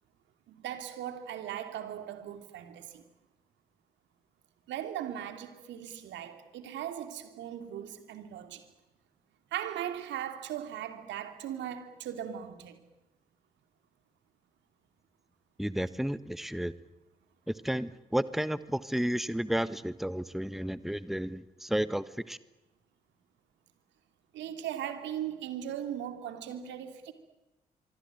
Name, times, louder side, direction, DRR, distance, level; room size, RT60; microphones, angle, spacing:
voice 1, 0.5-3.0 4.7-8.6 9.5-12.8 24.3-27.1, right 10 dB, 70° right, 2.8 m, -38 dB
voice 2, 15.6-16.7 17.5-22.4, equal, ahead, 1.3 m, -32 dB
25.0 x 23.5 x 9.0 m
hypercardioid pair, 40°, 19 cm